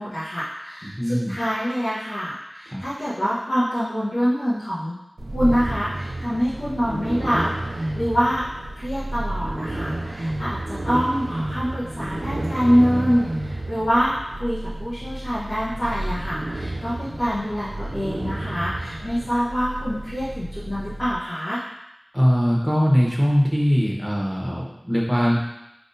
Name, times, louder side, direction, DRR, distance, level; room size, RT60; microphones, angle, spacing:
voice 1, 0.0-5.0 5.3-8.4 8.8-21.6, equal, 80° left, -11 dB, 0.9 m, -25 dB
voice 2, 0.8-1.3 2.7-2.8 22.1-25.4, equal, 5° right, -3 dB, 1.0 m, -21 dB
sound 1, 5.2-21.2, right 1 dB, 75° right, 0.4 m, -31 dB
4.6 x 3.6 x 2.7 m, 0.86 s
wide cardioid pair, 55°, 0 cm